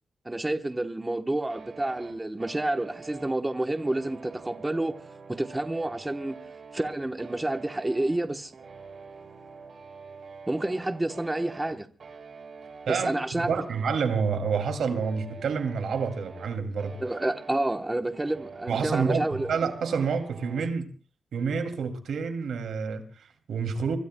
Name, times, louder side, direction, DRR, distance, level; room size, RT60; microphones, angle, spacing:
voice 1, 0.2-4.9 5.3-6.4 6.7-8.5 10.5-11.9 12.9-13.5 17.0-19.5, right 1 dB, 15° right, 1.0 m, -29 dB
sound 1, 1.5-20.7, right 4 dB, 60° right, 4.3 m, -46 dB
voice 2, 13.4-17.0 18.7-20.9 21.3-24.0, right 5 dB, 85° right, 2.5 m, -28 dB
24.5 x 23.5 x 2.2 m
cardioid pair, 95°, 0 cm